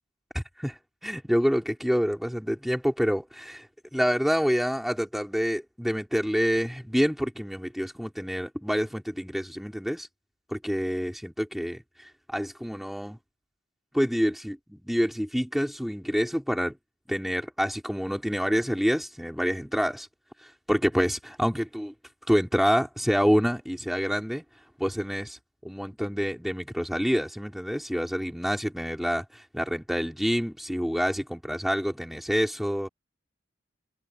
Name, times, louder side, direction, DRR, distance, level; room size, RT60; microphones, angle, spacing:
voice 1, 1.0-3.7 3.9-10.1 10.5-13.2 13.9-16.7 17.1-20.1 20.4-21.9 22.3-24.4 24.8-25.4 25.6-32.9, equal, ahead, 2.9 m, -27 dB
head